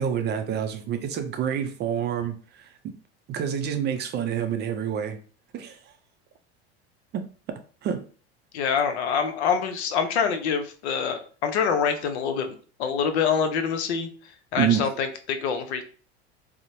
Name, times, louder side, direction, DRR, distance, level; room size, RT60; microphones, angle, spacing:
voice 1, 0.0-2.9 3.3-5.2 5.5-5.8 7.1-7.2 7.8-8.0 14.6-14.9, right 8 dB, 35° right, 7 dB, 0.4 m, -27 dB
voice 2, 8.5-12.5 12.8-14.1 14.5-15.8, left 6 dB, 80° left, 7 dB, 0.6 m, -25 dB
3.0 x 2.0 x 2.6 m, 0.40 s
hypercardioid pair, 90°, 32 cm